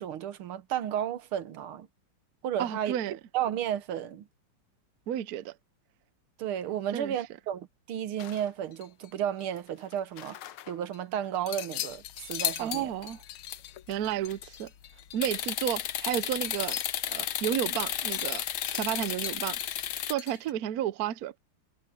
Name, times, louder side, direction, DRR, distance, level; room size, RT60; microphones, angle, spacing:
voice 1, 0.0-1.9 2.4-3.0 3.3-4.3 6.4-10.4 10.7-12.9, right 10 dB, 85° right, 1.9 m, -33 dB
voice 2, 2.6-3.2 5.1-5.5 6.9-7.1 12.6-13.2 13.9-14.7 15.1-16.8 17.1-18.4 18.7-19.6 20.1-21.4, right 11 dB, 65° right, 0.9 m, -32 dB
sound 1, 8.2-9.1 9.4-11.0 11.5-20.5, left 12 dB, 90° left, 1.7 m, -40 dB
sound 2, 12.2-13.0 13.5-13.6 14.0-14.5 15.2-20.1, left 11 dB, 70° left, 1.7 m, -33 dB
omnidirectional pair, 2.3 m